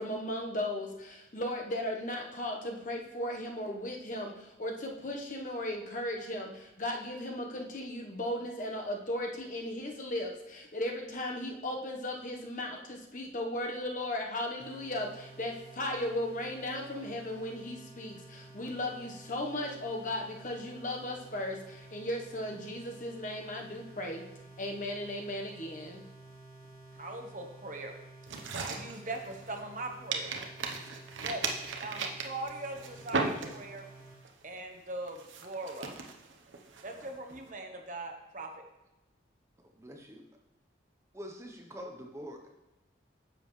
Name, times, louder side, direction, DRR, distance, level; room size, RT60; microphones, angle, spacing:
voice 1, 0.0-24.2 24.6-26.0, left 1 dB, 40° left, 1 dB, 1.1 m, -36 dB
sound 1, 14.6-34.2, right 2 dB, 10° left, 1.4 m, -52 dB
voice 2, 27.0-27.9 28.6-30.3 31.2-31.4 31.8-33.9 34.4-35.9 36.8-38.5, right 2 dB, 40° right, 4 dB, 1.1 m, -40 dB
sound 2, 28.3-29.8 30.1-33.9 34.3-34.6 35.1-37.4, right 4 dB, 80° right, 1.0 m, -36 dB
voice 3, 39.7-40.2 41.1-42.5, equal, 15° right, 2 dB, 0.8 m, -45 dB
10.0 x 7.5 x 3.2 m, 0.98 s
head